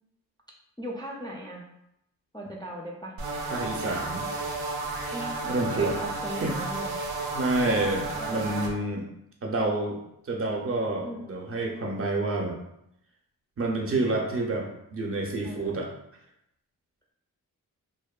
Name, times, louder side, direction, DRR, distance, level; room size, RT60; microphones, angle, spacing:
voice 1, 0.8-1.6 2.3-3.1 5.1-7.0 8.2-8.5 11.0-11.4 15.4-15.8, equal, 15° left, -3 dB, 0.3 m, -38 dB
sound 1, 3.2-8.7, right 3 dB, 90° right, 0.5 m, -32 dB
voice 2, 3.5-4.2 5.4-6.0 6.4-6.6 7.3-9.1 9.4-10.0 10.3-12.6 13.6-15.9, right 2 dB, 40° right, 0 dB, 0.5 m, -28 dB
2.7 x 2.1 x 2.3 m, 0.80 s
wide cardioid pair, 80°, 36 cm